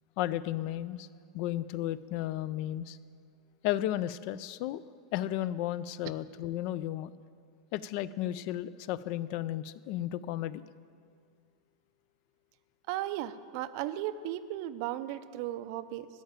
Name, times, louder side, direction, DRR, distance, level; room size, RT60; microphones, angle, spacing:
voice 1, 0.2-1.1 1.3-3.0 3.6-4.8 5.1-7.1 7.7-10.6, left 13 dB, 50° left, 17 dB, 0.4 m, -33 dB
voice 2, 12.9-16.1, right 13 dB, 55° right, 13 dB, 0.5 m, -36 dB
13.5 x 5.7 x 8.9 m, 2.2 s
supercardioid pair, 145°, 3 cm